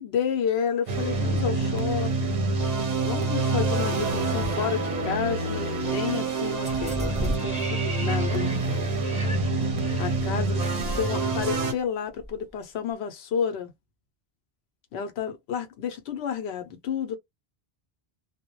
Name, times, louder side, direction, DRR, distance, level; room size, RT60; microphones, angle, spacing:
voice 1, 0.0-2.4 3.0-9.0 10.0-13.7 14.9-17.2, left 7 dB, 90° left, 0.9 m, -31 dB
sound 1, 0.9-11.7, right 3 dB, 50° right, 0.6 m, -27 dB
sound 2, 6.6-11.8 12.2-12.3, right 1 dB, 10° right, 0.7 m, -36 dB
2.1 x 2.0 x 2.9 m
omnidirectional pair, 1.0 m